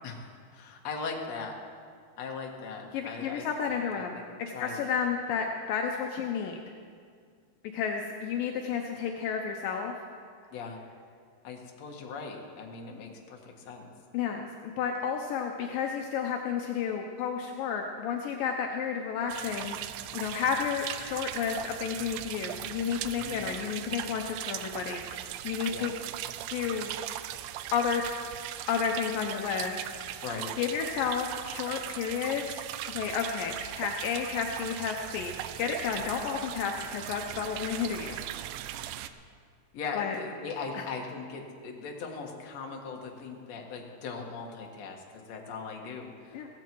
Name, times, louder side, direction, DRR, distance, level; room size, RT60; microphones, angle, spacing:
voice 1, 0.0-1.5 2.2-4.2 4.5-5.0 10.5-10.8 11.4-13.9 23.1-23.4 25.7-25.9 30.2-30.5 38.0-38.2 38.6-38.7 39.7-46.4, left 4 dB, 55° left, 1 dB, 2.1 m, -39 dB
voice 2, 2.9-6.6 7.7-9.9 14.1-19.8 20.1-25.9 26.5-26.9 27.7-28.0 28.7-30.2 30.6-38.1 39.9-40.2 40.7-40.8 46.3-46.5, left 7 dB, 80° left, 2 dB, 2.0 m, -32 dB
sound 1, 19.3-39.1, right 12 dB, 85° right, 2.8 m, -39 dB
16.0 x 15.5 x 4.6 m, 2.1 s
omnidirectional pair, 5.0 m